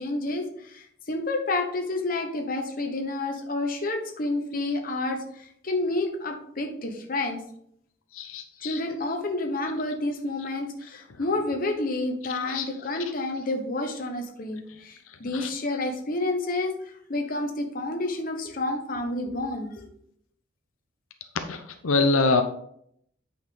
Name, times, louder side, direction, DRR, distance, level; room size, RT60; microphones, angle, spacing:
voice 1, 0.0-7.4 8.6-19.9, left 2 dB, 45° left, 3 dB, 1.2 m, -29 dB
voice 2, 8.1-8.8 12.3-12.9 14.7-15.5 21.3-22.4, left 3 dB, 90° left, 6 dB, 0.7 m, -26 dB
8.9 x 5.6 x 3.9 m, 0.70 s
head